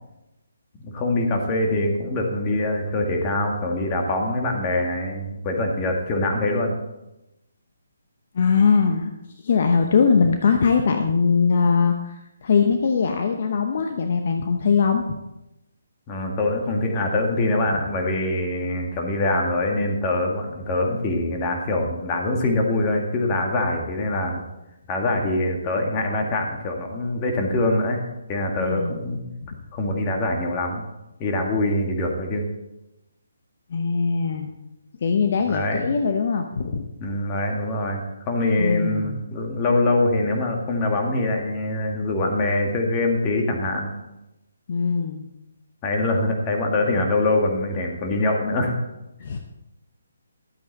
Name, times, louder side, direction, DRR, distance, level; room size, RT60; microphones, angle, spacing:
voice 1, 0.8-6.8 16.1-24.4 24.9-28.0 28.3-29.2 29.7-30.8 31.2-32.5 35.5-35.8 37.0-43.9 45.8-48.8, left 2 dB, 25° left, 1 dB, 1.9 m, -24 dB
voice 2, 8.3-9.1 9.4-15.1 28.6-29.0 33.7-34.5 35.0-36.8 38.6-39.2 44.7-45.3 49.2-49.4, left 5 dB, 50° left, 5 dB, 0.9 m, -21 dB
12.5 x 8.5 x 4.2 m, 0.95 s
figure-of-eight pair, 145°, 0 cm